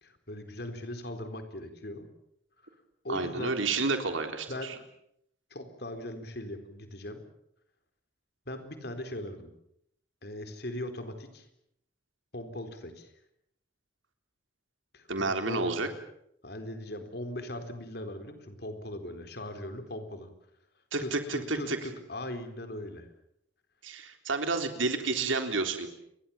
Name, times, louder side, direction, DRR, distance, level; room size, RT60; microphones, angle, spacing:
voice 1, 0.0-2.1 3.0-3.6 4.5-4.8 5.5-7.2 8.5-9.5 10.2-11.5 12.3-13.1 14.9-15.9 16.4-20.3 21.0-23.1, left 1 dB, 55° left, 8 dB, 4.1 m, -39 dB
voice 2, 3.1-4.7 15.1-15.9 20.9-21.8 23.8-25.9, right 3 dB, 90° right, 6 dB, 3.6 m, -30 dB
29.5 x 23.5 x 7.2 m, 0.75 s
head